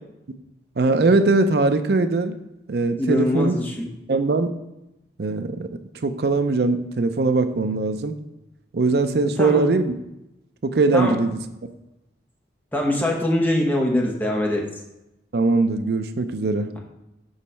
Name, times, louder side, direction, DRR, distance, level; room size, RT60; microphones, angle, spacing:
voice 1, 0.8-2.4 2.7-3.6 4.1-4.5 5.2-8.1 8.7-9.9 10.6-11.4 15.3-16.7, right 3 dB, 60° right, 9 dB, 0.5 m, -21 dB
voice 2, 3.0-3.9 9.4-9.6 10.9-11.2 12.7-14.6, left 1 dB, 10° left, 0 dB, 0.9 m, -22 dB
6.4 x 3.1 x 5.5 m, 0.90 s
head